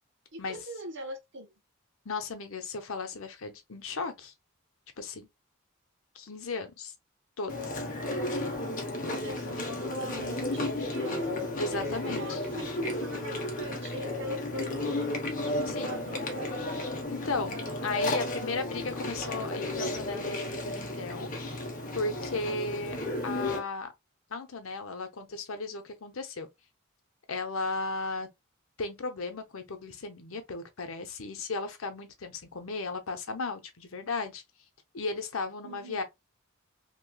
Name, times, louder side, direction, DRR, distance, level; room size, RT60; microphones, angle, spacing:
voice 1, 0.3-1.5 9.0-11.3 11.7-12.7 13.0-15.2 15.7-16.9 35.6-36.0, right 1 dB, 60° right, 0.9 m, -42 dB
voice 2, 2.0-4.3 5.0-5.3 6.1-6.9 7.4-7.8 11.6-12.4 15.7-16.0 17.1-21.3 21.9-23.0 23.2-23.9 24.3-26.5 27.3-28.3 28.8-34.4 34.9-36.0, left 3 dB, 75° left, 0.8 m, -35 dB
Chewing mastication, 7.5-23.6, left 1 dB, 40° left, 0.9 m, -33 dB
3.1 x 2.9 x 2.2 m
head